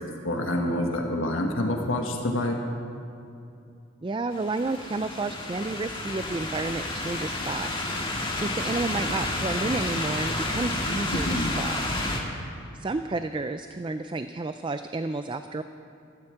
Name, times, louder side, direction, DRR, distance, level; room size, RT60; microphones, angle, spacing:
voice 1, 0.2-2.6 11.1-11.5, left 1 dB, 70° left, 1 dB, 1.5 m, -27 dB
voice 2, 4.0-11.8 12.7-15.6, right 3 dB, 25° right, 9 dB, 0.3 m, -31 dB
sound 1, 4.3-12.2, left 2 dB, 25° left, 1.7 m, -30 dB
13.5 x 13.0 x 7.8 m, 2.6 s
head